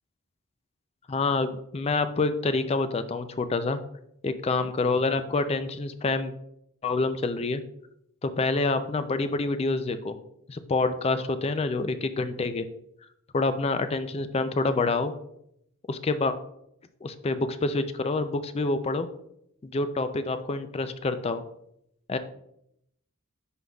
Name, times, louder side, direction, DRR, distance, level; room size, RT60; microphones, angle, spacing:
voice 1, 1.1-3.8 4.2-6.3 6.8-7.6 8.2-10.2 10.5-12.7 13.3-15.1 15.9-16.3 17.0-19.1 19.6-21.4 22.1-22.2, left 3 dB, 30° left, 10 dB, 0.4 m, -27 dB
11.0 x 3.9 x 2.3 m, 0.75 s
head